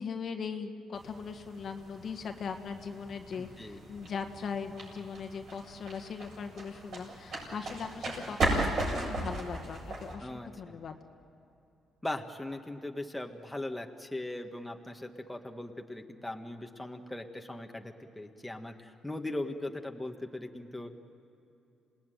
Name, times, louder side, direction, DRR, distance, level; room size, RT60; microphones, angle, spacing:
voice 1, 0.0-11.0, left 6 dB, 55° left, 5 dB, 1.6 m, -40 dB
sound 1, 0.9-10.1, right 2 dB, 60° right, 7.8 m, -37 dB
voice 2, 3.4-3.8 10.2-10.8 12.0-21.0, left 1 dB, 10° left, 3 dB, 1.8 m, -39 dB
27.5 x 19.5 x 9.3 m, 2.8 s
cardioid pair, 90°, 0 cm